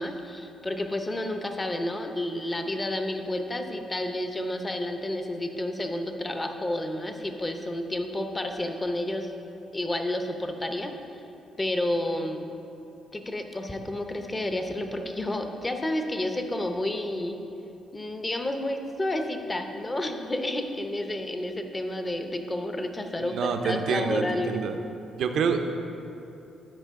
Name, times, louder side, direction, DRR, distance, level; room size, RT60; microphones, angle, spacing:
voice 1, 0.0-9.3 9.7-10.9 11.6-12.5 13.1-17.4 17.9-24.6, left 1 dB, 20° left, 5 dB, 0.7 m, -30 dB
voice 2, 23.2-24.8 25.2-25.6, right 6 dB, 70° right, 6 dB, 0.6 m, -27 dB
12.0 x 5.0 x 3.7 m, 2.8 s
cardioid pair, 90°, 0 cm